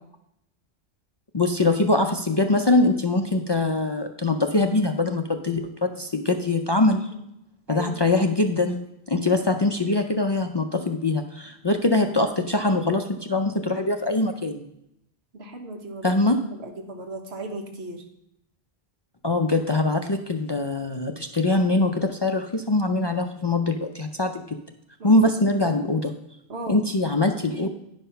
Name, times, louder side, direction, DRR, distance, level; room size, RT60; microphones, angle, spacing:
voice 1, 1.3-7.1 7.7-8.8 9.1-14.6 16.0-16.4 19.2-24.4 25.0-26.1 26.7-27.7, left 2 dB, 35° left, 5 dB, 0.4 m, -23 dB
voice 2, 7.7-8.2 15.3-16.2 16.5-18.0 25.0-25.2 25.6-25.8 26.5-26.8, right 2 dB, 85° right, 3 dB, 1.6 m, -36 dB
10.0 x 5.5 x 5.6 m, 0.80 s
omnidirectional pair, 1.1 m